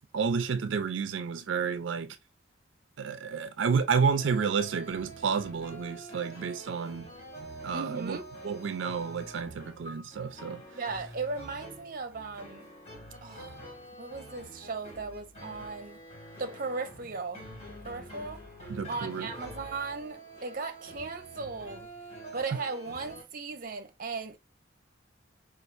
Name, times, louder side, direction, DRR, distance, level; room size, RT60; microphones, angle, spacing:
voice 1, 0.1-2.2 3.0-7.1 7.6-8.2 8.4-10.6 18.7-19.3, right 5 dB, 85° right, 0.4 m, -30 dB
sound 1, 4.2-23.2, right 1 dB, 35° left, 2.3 m, -47 dB
voice 2, 7.7-8.3 10.7-12.7 13.2-13.6 14.0-16.0 16.4-17.5 17.8-18.4 18.9-21.9 22.3-24.4, right 4 dB, 50° right, 0.6 m, -37 dB
4.4 x 2.4 x 2.4 m
head